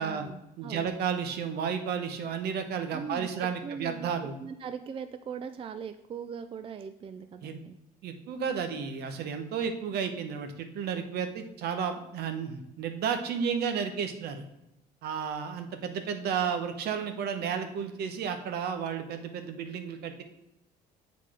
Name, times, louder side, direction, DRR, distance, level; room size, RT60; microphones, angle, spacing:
voice 1, 0.0-1.0 2.9-4.1 4.4-7.8, right 7 dB, 35° right, 9 dB, 0.4 m, -40 dB
voice 2, 0.6-4.4 7.4-7.6 8.0-14.4 15.0-20.2, right 7 dB, 70° right, 7 dB, 1.0 m, -32 dB
7.5 x 4.1 x 4.9 m, 0.89 s
cardioid pair, 110°, 17 cm